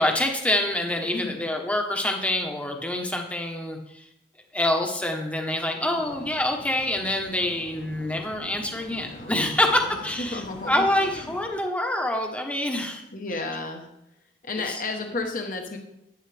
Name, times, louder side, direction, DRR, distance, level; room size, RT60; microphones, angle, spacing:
voice 1, 0.0-4.0 4.5-13.0, left 1 dB, 5° left, 2 dB, 1.1 m, -26 dB
voice 2, 5.8-6.3 9.1-9.9 10.2-11.3 13.1-13.9 14.4-15.8, left 3 dB, 45° left, 3 dB, 1.1 m, -33 dB
sound 1, 5.9-11.5, left 1 dB, 85° left, 2.4 m, -45 dB
10.5 x 9.6 x 3.4 m, 0.84 s
head